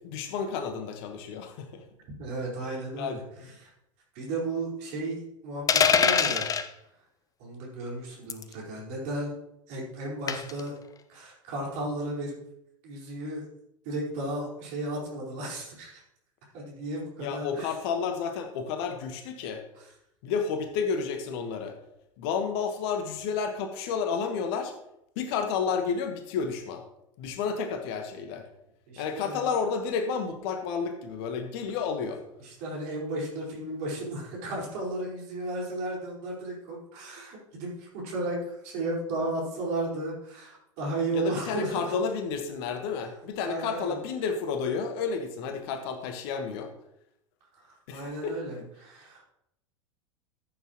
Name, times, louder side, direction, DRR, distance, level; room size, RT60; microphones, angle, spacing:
voice 1, 0.0-1.8 3.0-3.5 17.2-19.6 20.2-21.8 22.2-24.7 25.1-26.8 27.2-28.4 29.0-32.2 41.1-46.7 47.9-48.4, left 6 dB, 50° left, 6 dB, 1.5 m, -31 dB
voice 2, 2.2-3.7 4.1-6.5 7.4-9.4 9.7-10.8 11.1-12.3 12.8-13.4 13.8-16.0 16.5-17.7 19.7-19.9 28.9-29.5 32.4-41.9 43.4-44.0 47.5-49.2, right 2 dB, 50° right, -4 dB, 4.9 m, -34 dB
sound 1, 5.7-6.7 8.3-8.5 10.3-10.6, left 6 dB, 20° left, 0.7 m, -23 dB
14.0 x 8.5 x 3.1 m, 0.80 s
figure-of-eight pair, 85°, 16 cm